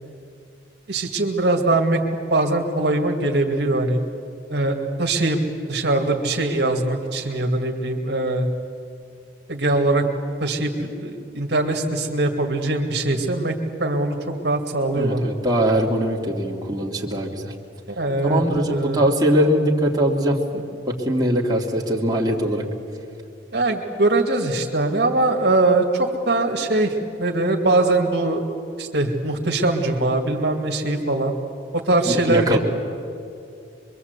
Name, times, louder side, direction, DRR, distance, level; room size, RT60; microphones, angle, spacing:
voice 1, 0.9-2.0 2.3-4.0 4.5-5.4 5.7-8.5 9.5-10.0 10.4-13.5 13.8-14.2 14.4-15.3 17.9-19.0 23.5-28.4 28.8-31.3 31.9-32.6, right 2 dB, 65° right, 2 dB, 2.1 m, -21 dB
voice 2, 15.0-17.5 18.3-22.6 32.1-32.6, right 1 dB, 20° right, -2 dB, 2.4 m, -21 dB
25.5 x 23.0 x 8.2 m, 2.5 s
head